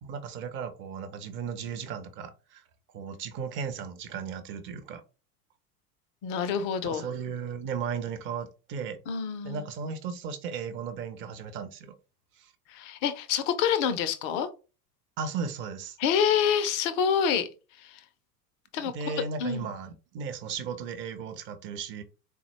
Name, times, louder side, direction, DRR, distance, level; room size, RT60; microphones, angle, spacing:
voice 1, 0.0-2.6 2.9-5.0 6.8-9.0 9.4-11.9 12.4-12.5 15.2-16.0 18.8-22.0, right 6 dB, 25° right, 0.5 m, -36 dB
voice 2, 6.2-7.0 9.1-9.6 12.7-14.5 16.0-17.5 17.8-18.0 18.7-18.9 19.4-19.7, left 7 dB, 30° left, 0.3 m, -27 dB
3.8 x 2.1 x 2.8 m
figure-of-eight pair, 75°, 47 cm